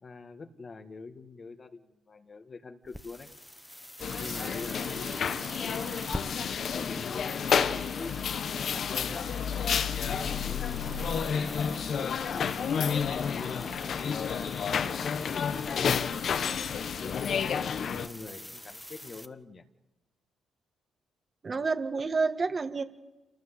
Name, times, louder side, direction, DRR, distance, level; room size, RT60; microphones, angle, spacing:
voice 1, 0.0-3.3 4.2-5.8 6.4-9.6 10.1-12.7 13.2-15.9 17.0-19.6, left 4 dB, 40° left, 7 dB, 2.0 m, -45 dB
sound 1, 2.8-19.3, equal, 5° left, 1.2 m, -45 dB
sound 2, 4.0-18.1, left 7 dB, 55° left, 1.2 m, -30 dB
voice 2, 21.4-22.8, right 4 dB, 35° right, 7 dB, 1.9 m, -29 dB
27.5 x 19.0 x 8.2 m, 1.1 s
cardioid pair, 90°, 0 cm